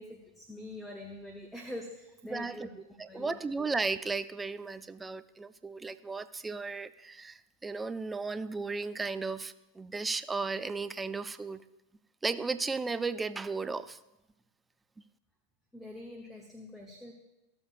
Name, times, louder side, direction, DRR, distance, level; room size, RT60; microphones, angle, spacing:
voice 1, 0.0-3.5 15.7-17.1, left 1 dB, 5° left, 2 dB, 1.0 m, -45 dB
voice 2, 2.3-2.7 3.0-11.6 12.2-14.0, right 4 dB, 15° right, 14 dB, 0.4 m, -35 dB
14.5 x 6.9 x 2.5 m, 0.96 s
figure-of-eight pair, 90°, 0 cm